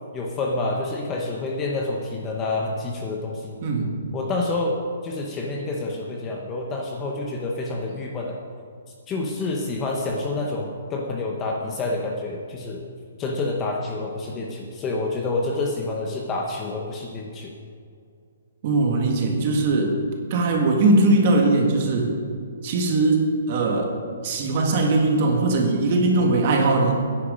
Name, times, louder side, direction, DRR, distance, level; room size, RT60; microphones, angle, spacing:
voice 1, 0.1-3.6 4.1-8.4 9.1-12.9 13.2-17.5, left 2 dB, 15° left, 0 dB, 0.8 m, -28 dB
voice 2, 18.6-20.0 20.3-22.1 22.6-23.9 24.2-27.0, right 2 dB, 30° right, 1 dB, 1.7 m, -20 dB
14.0 x 10.5 x 5.1 m, 2.2 s
hypercardioid pair, 175°, 0 cm